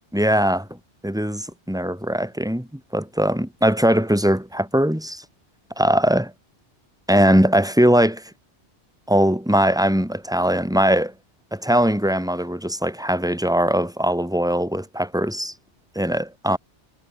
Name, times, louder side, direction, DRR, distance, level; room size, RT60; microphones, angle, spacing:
voice 1, 0.1-0.8 1.0-5.2 5.8-6.2 7.1-8.3 9.1-11.1 11.5-15.5 15.9-16.6, equal, 5° right, 4.7 m, -20 dB
omnidirectional pair, 1.1 m